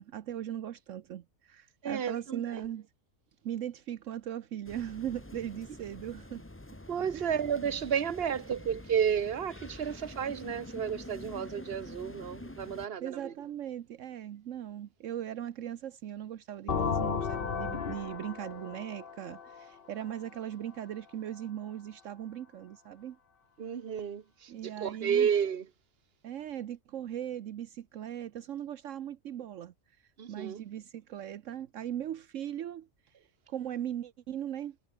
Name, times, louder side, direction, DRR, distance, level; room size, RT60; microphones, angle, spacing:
voice 1, 0.0-2.9 3.4-6.5 7.1-7.4 13.0-23.2 24.5-25.3 26.2-29.7 30.3-33.1 33.5-34.8, right 10 dB, 75° right, 1.1 m, -39 dB
voice 2, 1.8-2.4 6.9-13.3 23.6-25.6 30.2-30.6, right 8 dB, 50° right, 1.3 m, -32 dB
sound 1, 4.6-12.9, left 1 dB, 10° left, 1.1 m, -47 dB
sound 2, 16.7-20.4, left 6 dB, 45° left, 1.3 m, -34 dB
omnidirectional pair, 1.3 m